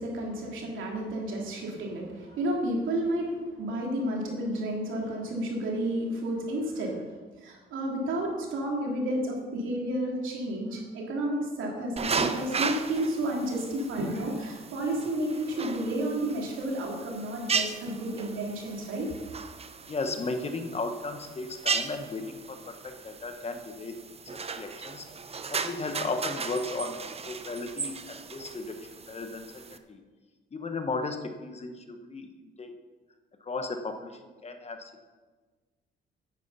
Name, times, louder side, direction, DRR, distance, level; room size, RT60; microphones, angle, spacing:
voice 1, 0.0-7.0 7.4-19.1, right 1 dB, 80° right, -1 dB, 3.0 m, -31 dB
sound 1, 12.0-29.8, right 5 dB, 30° right, 0.8 m, -36 dB
voice 2, 19.9-24.0 24.3-25.1 25.5-27.0 27.2-30.0 30.5-32.7 33.4-34.9, left 3 dB, 30° left, 7 dB, 1.2 m, -35 dB
9.7 x 9.3 x 5.6 m, 1.4 s
cardioid pair, 90°, 20 cm